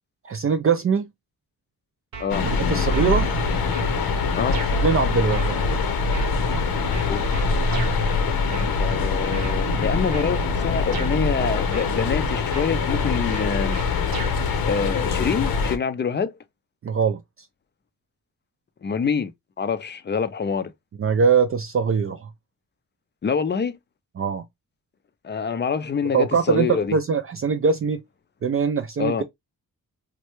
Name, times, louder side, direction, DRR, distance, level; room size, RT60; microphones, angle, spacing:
voice 1, 0.2-1.1 2.4-3.3 4.8-5.6 16.8-17.2 21.0-22.3 24.2-24.5 26.1-26.7 26.9-28.0 28.4-29.2, right 5 dB, 40° right, 0.4 m, -22 dB
sound 1, 2.1-2.6 2.9-3.9 4.5-4.7 5.3-8.0 8.5-9.0 9.3-10.3 10.9-11.1 11.7-12.2 12.5-14.4, right 5 dB, 75° right, 0.9 m, -35 dB
sound 2, 2.3-15.8, left 4 dB, 85° left, 0.8 m, -23 dB
voice 2, 8.8-13.8 14.7-16.3 18.8-20.7 23.2-23.8 25.2-27.0 29.0-29.2, left 6 dB, 30° left, 0.4 m, -26 dB
3.1 x 2.2 x 2.9 m
cardioid pair, 80°, 35 cm